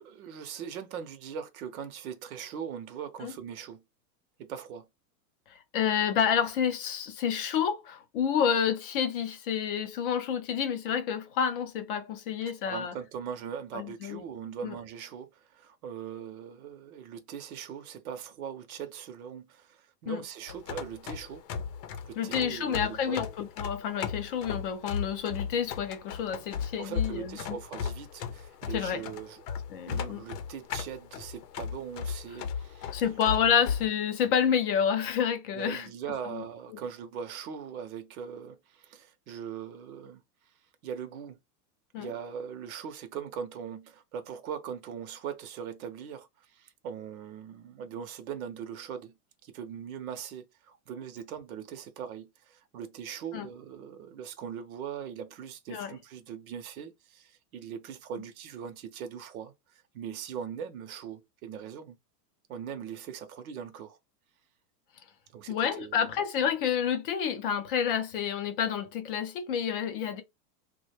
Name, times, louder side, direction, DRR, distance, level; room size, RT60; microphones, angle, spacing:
voice 1, 0.0-3.8 4.4-4.9 12.4-21.4 22.0-23.2 26.8-29.4 29.9-33.1 35.5-40.5 40.8-41.4 42.0-49.1 49.4-62.0 62.5-64.0 65.3-66.1, right 8 dB, 60° right, 0.7 m, -40 dB
voice 2, 5.5-12.9 13.7-14.2 14.6-14.7 20.1-20.2 22.2-27.6 28.7-29.0 29.7-30.2 32.9-35.9 36.3-36.4 36.7-36.8 41.9-42.1 53.3-53.5 55.7-55.9 65.5-70.2, left 8 dB, 35° left, 0.4 m, -29 dB
sound 1, 20.5-33.9, left 7 dB, 75° left, 0.7 m, -36 dB
3.1 x 2.2 x 3.2 m
supercardioid pair, 155°, 49 cm